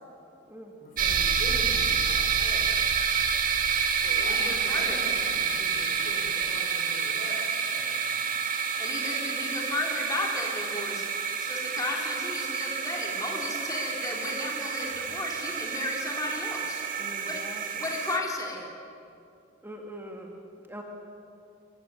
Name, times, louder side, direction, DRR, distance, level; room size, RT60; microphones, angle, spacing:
voice 1, 0.8-2.7 4.0-8.3, left 1 dB, 45° left, 1 dB, 6.1 m, -43 dB
sound 1, 1.0-18.2, right 6 dB, 45° right, 2.2 m, -28 dB
voice 2, 4.2-5.0 8.8-11.1 11.4-16.8 17.2-17.4 17.8-18.7, left 2 dB, 20° left, -2 dB, 4.0 m, -34 dB
voice 3, 17.0-17.8 19.6-20.4 20.7-20.8, equal, 10° right, 0 dB, 2.1 m, -43 dB
25.0 x 23.5 x 9.9 m, 2.6 s
head